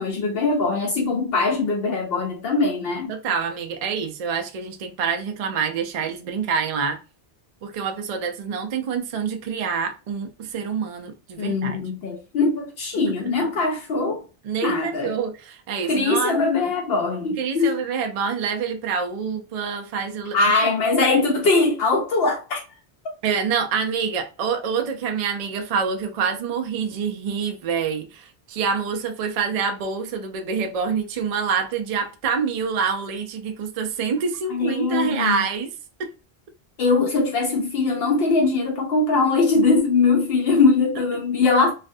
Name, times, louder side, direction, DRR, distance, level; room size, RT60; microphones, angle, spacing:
voice 1, 0.0-3.1 11.4-14.2 14.6-15.1 15.9-17.8 20.3-22.6 34.5-35.4 36.8-41.7, left 3 dB, 70° left, 0.8 m, -21 dB
voice 2, 3.1-7.0 7.6-11.8 14.4-16.5 17.4-20.4 23.2-35.7 36.0-36.1, right 6 dB, 55° right, 0.4 m, -26 dB
2.5 x 2.1 x 2.5 m
omnidirectional pair, 1.1 m